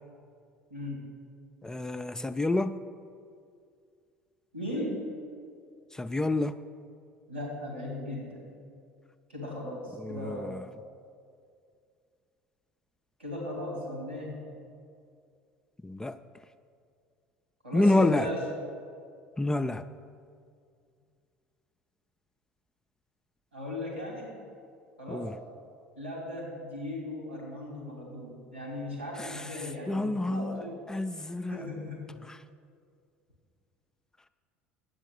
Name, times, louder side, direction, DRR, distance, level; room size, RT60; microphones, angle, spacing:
voice 1, 0.7-1.0 4.5-5.0 7.3-8.4 9.3-10.6 13.2-14.4 17.6-18.5 23.5-24.3 25.0-25.3 25.9-30.8 31.4-32.2, left 1 dB, 90° right, -2 dB, 2.9 m, -37 dB
voice 2, 1.6-2.8 5.9-6.6 10.0-10.6 15.8-16.2 17.7-18.3 19.4-19.9 25.1-25.4 29.2-29.6 29.9-31.7 32.2-32.4, left 2 dB, 10° left, 11 dB, 0.3 m, -28 dB
8.9 x 8.2 x 6.5 m, 2.3 s
figure-of-eight pair, 65°, 6 cm